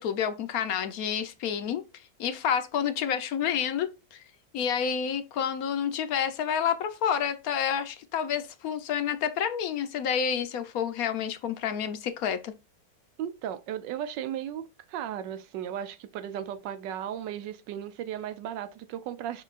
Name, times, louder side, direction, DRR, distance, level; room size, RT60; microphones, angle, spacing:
voice 1, 0.0-1.8 2.2-4.2 4.5-12.5, left 8 dB, 65° left, 0.9 m, -29 dB
voice 2, 13.2-19.4, right 10 dB, 85° right, 1.3 m, -36 dB
5.7 x 3.8 x 2.4 m
omnidirectional pair, 1.9 m